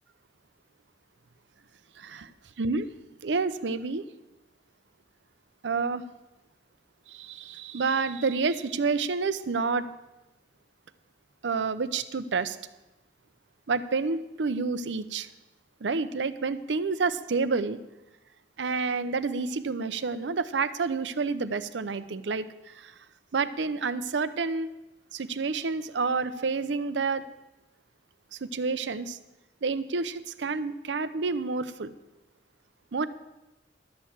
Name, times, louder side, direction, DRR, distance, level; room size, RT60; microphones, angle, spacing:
voice 1, 3.2-4.0 5.6-6.0 7.1-9.9 11.4-12.6 13.7-15.3 15.8-17.8 18.6-22.9 23.3-24.7 25.1-27.2 28.3-29.2 29.6-31.9 32.9-33.1, right 4 dB, 85° right, 13 dB, 0.6 m, -29 dB
12.0 x 6.5 x 7.3 m, 1.0 s
head